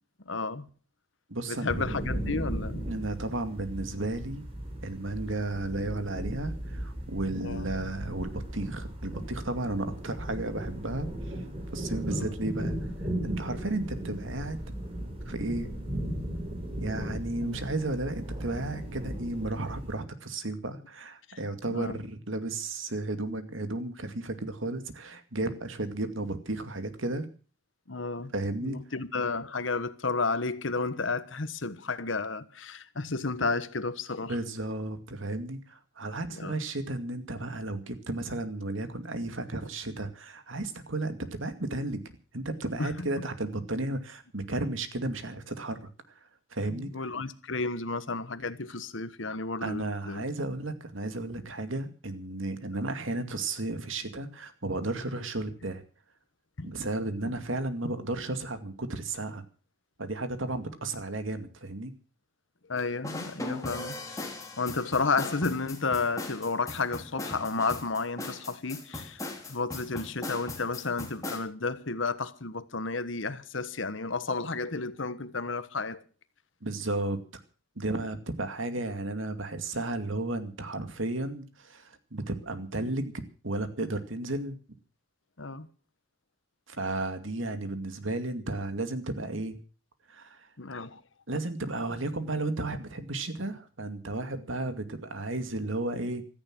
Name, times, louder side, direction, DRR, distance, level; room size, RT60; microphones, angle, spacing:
voice 1, 0.2-0.7 1.5-2.8 7.4-7.7 12.0-12.3 17.4-17.6 21.3-21.4 21.7-22.0 27.9-28.3 28.6-34.4 36.3-36.6 42.8-43.1 46.7-50.2 56.6-56.7 62.7-64.0 64.6-69.2 69.5-76.0 85.4-85.7 90.6-91.0, left 4 dB, 75° left, 1.3 m, -32 dB
voice 2, 1.3-2.0 2.9-4.4 4.8-11.3 11.7-12.8 13.2-14.6 15.3-15.7 16.7-27.3 28.3-28.8 34.3-42.0 42.3-45.9 46.5-46.9 49.6-55.8 56.6-59.4 60.0-61.9 76.6-77.4 77.8-84.6 86.7-89.6 90.1-90.5 91.3-96.2, right 2 dB, 85° right, 2.3 m, -33 dB
sound 1, 1.7-20.0, right 1 dB, 30° right, 4.9 m, -36 dB
sound 2, 63.0-71.4, left 2 dB, 15° left, 3.4 m, -38 dB
16.0 x 14.0 x 6.1 m
head